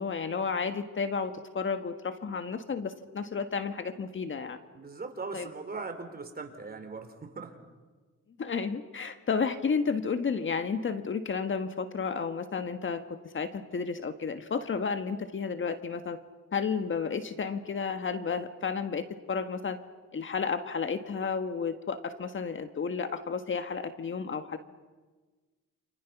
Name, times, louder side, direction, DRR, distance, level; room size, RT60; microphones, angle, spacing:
voice 1, 0.0-4.6 5.3-5.5 8.4-16.2 16.5-19.8 20.1-24.6, left 5 dB, 40° left, 9 dB, 1.6 m, -32 dB
voice 2, 4.7-7.6, right 4 dB, 30° right, 6 dB, 4.0 m, -40 dB
29.0 x 27.5 x 6.0 m, 1.3 s
cardioid pair, 90°, 30 cm